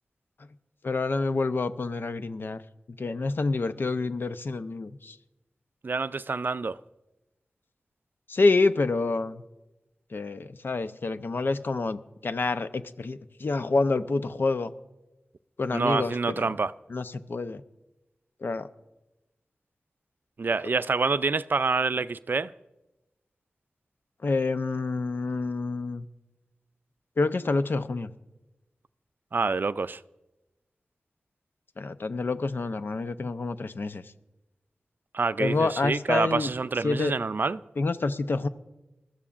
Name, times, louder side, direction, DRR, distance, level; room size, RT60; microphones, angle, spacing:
voice 1, 0.8-2.6 3.0-5.2 8.3-9.4 10.1-14.7 15.6-16.5 16.9-17.6 18.4-18.7 24.2-26.0 27.2-28.1 31.8-34.0 35.4-36.5 36.8-37.2 37.8-38.5, left 3 dB, 65° left, 0.6 m, -27 dB
voice 2, 5.8-6.8 15.7-16.7 20.4-22.5 29.3-30.0 35.1-37.6, right 4 dB, 60° right, 0.4 m, -27 dB
21.0 x 13.0 x 2.5 m
cardioid pair, 45°, 4 cm